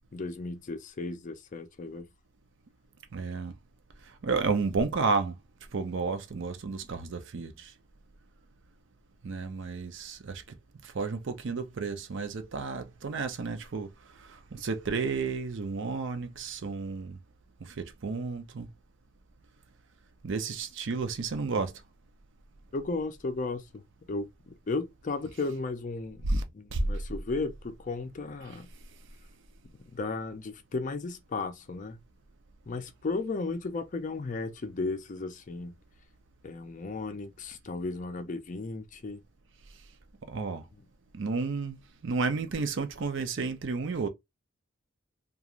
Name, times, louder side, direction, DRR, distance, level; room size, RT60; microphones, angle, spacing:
voice 1, 0.1-2.1 22.7-23.8 24.1-26.2 26.5-28.7 29.9-32.0 32.7-35.7 36.4-39.2, left 3 dB, 40° left, 0.4 m, -35 dB
voice 2, 3.1-3.5 4.2-5.3 5.7-7.7 9.2-10.6 10.8-13.9 14.2-17.2 17.6-18.7 20.2-21.7 26.2-26.4 26.7-26.8 40.3-40.6 41.1-41.8 42.0-44.1, right 4 dB, 65° right, 0.5 m, -32 dB
3.0 x 2.3 x 2.4 m
head